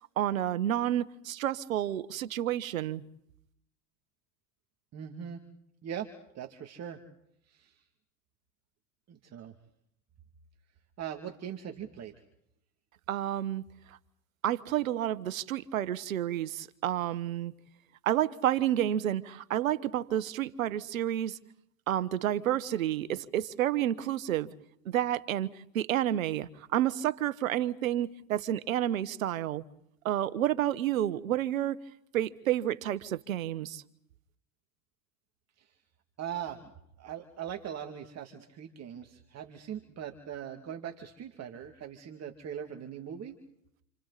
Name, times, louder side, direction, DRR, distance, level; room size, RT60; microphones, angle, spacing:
voice 1, 0.2-3.0 13.1-13.6 14.4-17.5 18.0-21.4 21.9-24.5 24.8-25.5 25.7-29.6 30.0-31.8 32.1-33.8, right 12 dB, 90° right, 1.3 m, -30 dB
voice 2, 4.9-5.4 5.8-6.1 6.3-7.0 7.5-7.8 9.1-9.5 11.0-12.1 35.6-35.7 36.2-36.6 37.0-43.3, right 9 dB, 40° right, 2.6 m, -40 dB
29.5 x 29.0 x 4.2 m
hypercardioid pair, 95°, 40 cm